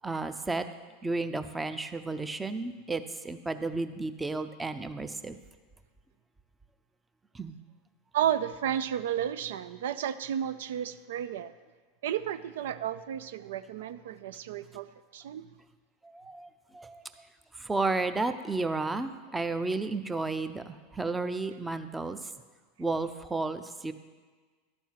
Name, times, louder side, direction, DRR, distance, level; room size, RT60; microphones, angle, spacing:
voice 1, 0.0-0.6 1.0-5.4 7.3-7.6 16.1-16.5 16.7-17.0 17.6-22.2 22.8-23.9, right 3 dB, 10° right, 10 dB, 0.6 m, -32 dB
voice 2, 8.1-11.5 12.0-14.9 15.1-15.5, right 10 dB, 75° right, 14 dB, 0.4 m, -32 dB
12.0 x 4.5 x 7.4 m, 1.4 s
hypercardioid pair, 105°, 0 cm